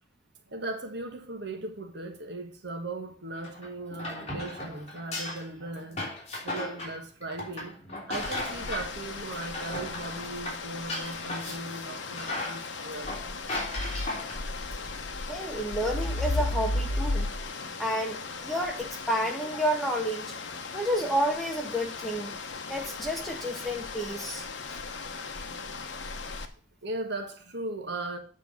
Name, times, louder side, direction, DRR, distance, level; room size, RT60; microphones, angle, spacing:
voice 1, 0.5-6.0 6.4-7.8 8.1-13.3 14.8-14.9 26.8-28.2, right 2 dB, 65° right, 1.5 m, -38 dB
sound 1, 3.4-9.0 9.3-11.8 12.2-14.5, left 2 dB, 35° left, 3.3 m, -36 dB
sound 2, 8.1-26.5, left 3 dB, 75° left, 1.0 m, -36 dB
voice 2, 15.3-17.3 17.8-20.3 20.7-22.3 22.7-24.4, equal, ahead, 1.4 m, -30 dB
8.7 x 4.6 x 6.5 m
head